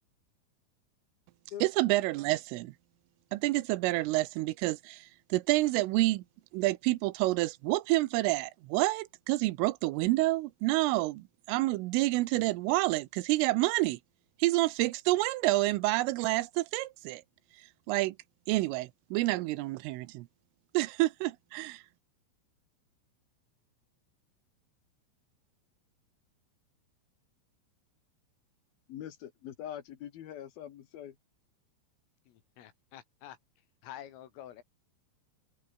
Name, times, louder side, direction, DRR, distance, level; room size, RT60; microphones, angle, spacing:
voice 1, 1.6-2.7 3.3-6.2 6.5-14.0 14.4-17.2 17.9-18.2 18.5-20.3 20.8-21.8, right 19 dB, 85° right, 3.5 m, -28 dB
voice 2, 28.9-31.2, left 10 dB, 60° left, 2.8 m, -43 dB
voice 3, 32.3-33.4 33.8-34.6, left 11 dB, 85° left, 5.1 m, -48 dB
omnidirectional pair, 5.7 m